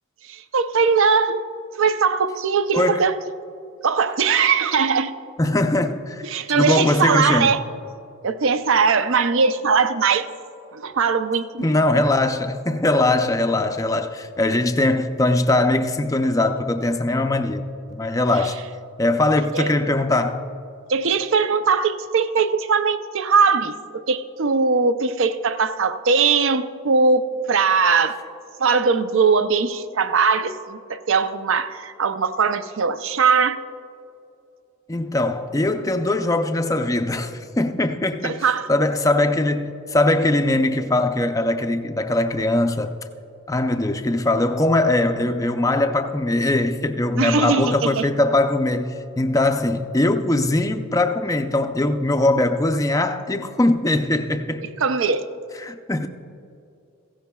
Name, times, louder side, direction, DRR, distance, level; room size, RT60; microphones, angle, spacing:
voice 1, 0.3-1.4 1.8-3.1 3.8-5.1 6.2-7.6 8.2-10.3 10.7-11.7 19.5-19.7 20.9-23.7 24.1-28.2 28.6-33.6 38.2-38.7 47.2-48.1 54.8-55.3, right 5 dB, 60° right, 0.5 m, -20 dB
voice 2, 2.7-3.1 5.4-6.2 6.5-7.6 11.6-17.6 17.9-18.6 19.0-20.5 34.9-42.9 43.5-54.7 55.6-56.1, left 2 dB, 15° left, 0.4 m, -21 dB
16.5 x 15.5 x 2.3 m
head